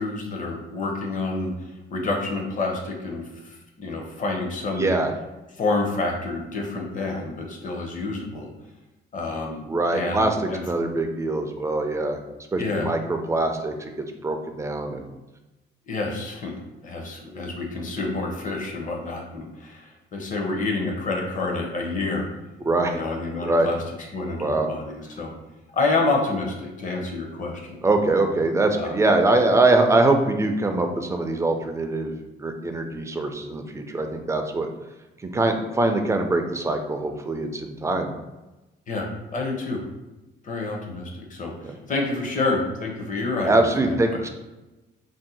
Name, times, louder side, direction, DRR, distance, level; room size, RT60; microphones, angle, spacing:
voice 1, 0.0-4.9 5.6-8.5 9.1-9.6 9.9-10.6 12.6-12.9 15.9-16.5 16.8-22.3 22.9-23.8 24.1-25.3 25.7-27.8 28.7-29.0 38.9-39.8 40.4-44.2, left 3 dB, 45° left, 1 dB, 0.7 m, -28 dB
voice 2, 4.7-5.1 9.7-10.4 10.7-12.2 12.5-15.1 22.7-23.0 23.5-23.7 24.4-24.7 27.8-32.1 32.4-34.7 35.2-38.1 41.6-41.8 43.4-44.3, right 2 dB, 15° right, 5 dB, 0.3 m, -23 dB
2.6 x 2.1 x 3.9 m, 1.1 s
cardioid pair, 120°, 19 cm